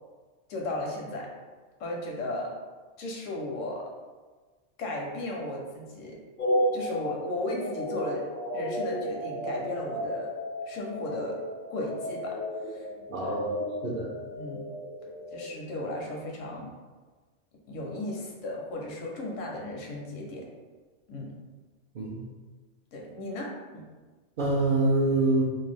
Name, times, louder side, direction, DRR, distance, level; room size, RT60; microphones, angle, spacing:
voice 1, 0.5-1.3 1.8-2.5 3.0-3.9 4.8-6.2 6.7-8.3 8.5-10.3 10.6-11.4 11.7-12.4 12.6-12.9 13.2-13.4 14.3-14.6 15.3-16.7 17.7-20.5 21.1-21.3 22.9-23.8, left 1 dB, 80° left, -1 dB, 1.0 m, -35 dB
sound 1, 6.4-15.5, equal, 55° left, 0.6 m, -33 dB
voice 2, 13.1-13.5 13.8-14.1 21.9-22.2 24.4-25.4, right 2 dB, 60° right, -5 dB, 0.5 m, -25 dB
2.6 x 2.2 x 3.3 m, 1.4 s
omnidirectional pair, 1.3 m